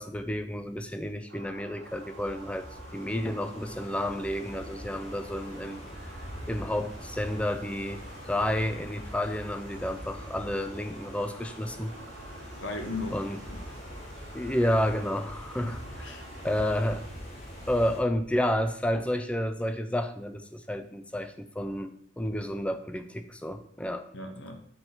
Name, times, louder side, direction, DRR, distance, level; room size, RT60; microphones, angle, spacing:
voice 1, 0.0-2.6 2.9-5.8 6.5-11.9 13.1-13.4 14.3-16.2 16.4-17.0 17.7-24.1, left 1 dB, 5° left, 8 dB, 0.4 m, -30 dB
sound 1, 1.3-17.0, right 2 dB, 80° right, 1.9 m, -50 dB
sound 2, 1.8-18.0, equal, 35° left, 2.2 m, -44 dB
voice 2, 5.6-5.9 12.6-13.2 13.5-13.7 15.6-15.7 16.0-16.6 24.1-24.7, left 2 dB, 70° left, 4 dB, 1.1 m, -38 dB
7.8 x 4.0 x 4.4 m, 0.66 s
head